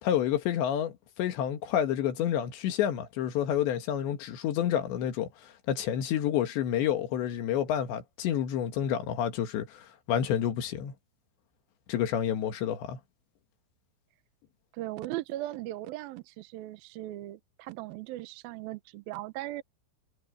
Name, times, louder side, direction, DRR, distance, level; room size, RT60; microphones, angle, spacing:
voice 1, 0.0-10.9 11.9-13.0, left 10 dB, 80° left, 4.1 m, -29 dB
voice 2, 14.7-19.6, right 16 dB, 70° right, 2.4 m, -38 dB
omnidirectional pair, 5.0 m